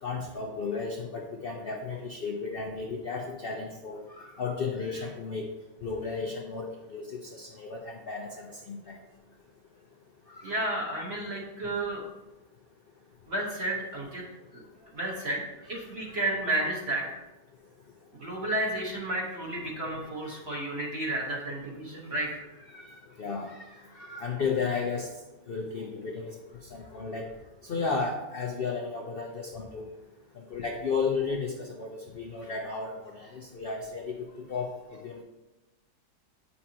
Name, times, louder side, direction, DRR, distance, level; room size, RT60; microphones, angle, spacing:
voice 1, 0.0-5.5 5.8-9.0 10.3-10.7 15.6-16.2 19.8-19.9 22.2-22.4 22.7-25.1 25.5-26.3 26.7-27.3 27.6-29.8 30.4-35.2, left 4 dB, 65° left, 0 dB, 0.5 m, -34 dB
voice 2, 10.4-12.0 13.3-14.2 14.5-14.6 14.9-17.2 18.2-22.4, right 1 dB, 40° right, -2 dB, 1.4 m, -32 dB
8.7 x 5.6 x 2.9 m, 1.0 s
omnidirectional pair, 1.9 m